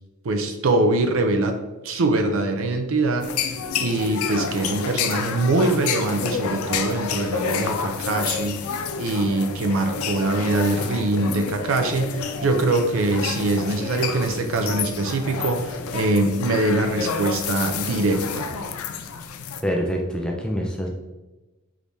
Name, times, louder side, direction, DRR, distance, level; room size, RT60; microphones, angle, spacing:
voice 1, 0.2-1.6 1.8-3.3 3.8-8.6 9.0-18.5, right 2 dB, 65° right, 6 dB, 0.5 m, -23 dB
sound 1, 3.2-19.6, left 6 dB, 80° left, 0.4 m, -29 dB
voice 2, 19.6-20.9, equal, 5° left, -1 dB, 0.5 m, -25 dB
4.8 x 3.4 x 2.6 m, 1.1 s
head